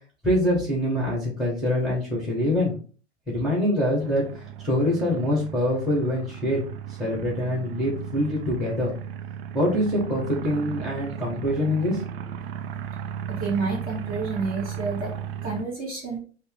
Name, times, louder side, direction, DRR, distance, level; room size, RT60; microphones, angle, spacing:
voice 1, 0.2-2.7 3.3-6.7 7.0-8.9 9.5-12.0, left 1 dB, ahead, -5 dB, 1.7 m, -24 dB
sound 1, 4.0-15.6, right 9 dB, 55° right, 0.5 m, -36 dB
voice 2, 13.3-15.1 15.4-16.2, right 4 dB, 25° right, -2 dB, 2.1 m, -29 dB
5.3 x 2.2 x 3.6 m, 0.40 s
figure-of-eight pair, 95°, 35 cm